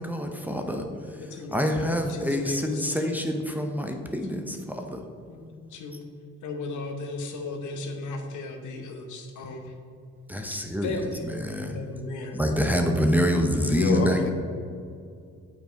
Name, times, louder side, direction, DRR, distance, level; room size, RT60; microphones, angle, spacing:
voice 1, 0.0-0.8 1.5-5.0 10.3-10.9 11.3-11.8 12.3-14.3, equal, 5° right, 2 dB, 0.6 m, -26 dB
voice 2, 0.6-4.1 5.3-6.0 6.4-9.7 10.5-11.3 11.7-12.5 12.7-12.9, left 2 dB, 75° left, 4 dB, 1.0 m, -37 dB
voice 3, 13.6-14.3, left 4 dB, 40° left, 5 dB, 1.0 m, -27 dB
7.0 x 5.5 x 4.5 m, 2.4 s
cardioid pair, 90°, 30 cm